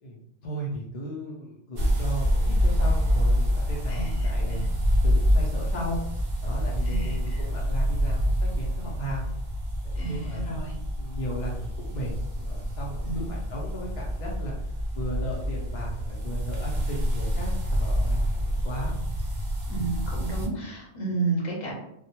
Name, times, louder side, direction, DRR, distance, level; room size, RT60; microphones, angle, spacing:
voice 1, 0.0-4.7 5.0-6.0 6.4-9.3 9.8-10.5 11.0-14.6 14.9-18.9, equal, 65° left, -4 dB, 0.4 m, -36 dB
sound 1, 1.8-20.5, equal, 85° right, 0.4 m, -27 dB
voice 2, 3.9-4.7 6.8-7.4 9.9-10.8 13.0-13.3 19.7-21.7, right 3 dB, 40° left, -4 dB, 0.8 m, -32 dB
2.1 x 2.0 x 2.8 m, 0.79 s
omnidirectional pair, 1.3 m